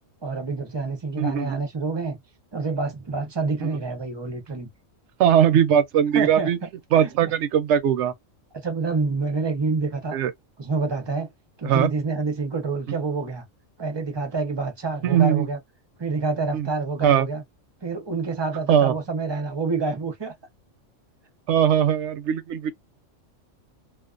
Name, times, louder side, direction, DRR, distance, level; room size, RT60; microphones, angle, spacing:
voice 1, 0.2-2.2 2.5-4.7 6.1-7.3 8.5-10.2 10.6-11.3 11.6-13.4 13.8-15.6 16.0-17.4 17.8-20.3, right 4 dB, 30° right, 0.5 m, -27 dB
voice 2, 1.2-1.6 3.6-3.7 5.2-6.6 6.9-8.1 10.1-10.3 11.6-11.9 15.0-15.5 16.5-16.7 17.0-17.3 18.7-18.9 21.5-22.7, right 9 dB, 70° right, 0.8 m, -20 dB
2.4 x 2.2 x 2.4 m
omnidirectional pair, 1.3 m